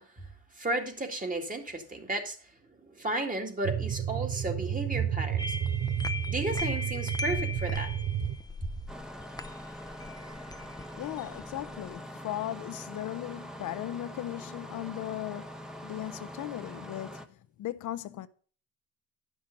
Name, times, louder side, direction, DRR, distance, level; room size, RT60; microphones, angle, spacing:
voice 1, 0.0-5.6 6.3-7.9 8.2-8.3 8.6-8.7, right 2 dB, 25° right, 2.1 m, -34 dB
sound 1, 3.6-8.4, right 10 dB, 70° right, 0.8 m, -31 dB
sound 2, 5.4-12.0, left 3 dB, 15° left, 0.6 m, -39 dB
Engine starting, 8.9-17.3, equal, ahead, 0.9 m, -43 dB
voice 2, 10.9-18.3, left 13 dB, 75° left, 0.7 m, -37 dB
10.0 x 6.1 x 5.2 m
cardioid pair, 90°, 30 cm